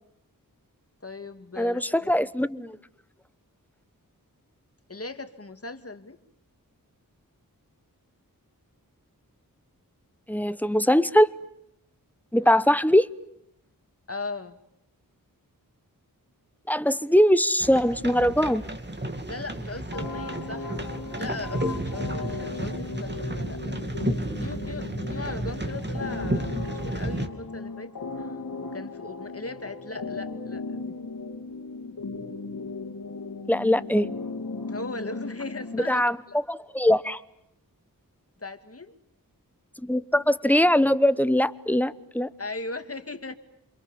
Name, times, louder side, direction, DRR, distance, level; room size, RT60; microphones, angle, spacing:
voice 1, 1.0-2.3 4.9-6.2 12.4-12.5 14.1-14.6 19.3-20.9 21.2-23.9 24.4-28.3 28.6-31.0 34.7-36.4 38.4-39.0 42.4-43.4, left 3 dB, 40° left, 2.3 m, -38 dB
voice 2, 1.6-2.8 10.3-11.3 12.3-13.1 16.7-18.6 33.5-34.1 35.7-36.2 36.5-37.2 39.8-42.3, equal, 5° left, 1.0 m, -21 dB
sound 1, 17.6-27.3, right 1 dB, 30° right, 2.7 m, -32 dB
sound 2, 19.9-35.9, left 3 dB, 75° left, 2.5 m, -37 dB
28.0 x 27.0 x 7.1 m
wide cardioid pair, 85°, 35 cm